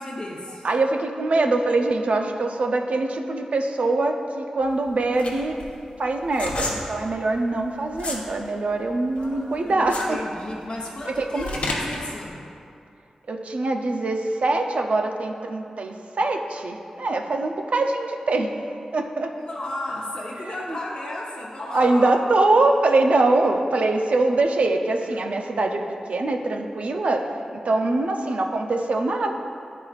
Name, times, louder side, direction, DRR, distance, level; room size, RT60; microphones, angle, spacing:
voice 1, 0.0-0.6 9.2-12.4 19.3-22.2, left 1 dB, 50° left, -6 dB, 0.8 m, -34 dB
voice 2, 0.6-5.6 6.0-10.2 11.2-11.7 13.3-18.5 18.9-19.3 20.4-20.8 21.7-25.8 26.1-27.3 27.5-29.3, right 2 dB, 65° right, 4 dB, 0.5 m, -23 dB
sound 1, 4.6-8.3 8.7-12.0, left 2 dB, 70° left, 1.0 m, -31 dB
10.5 x 4.7 x 2.4 m, 2.6 s
cardioid pair, 50°, 2 cm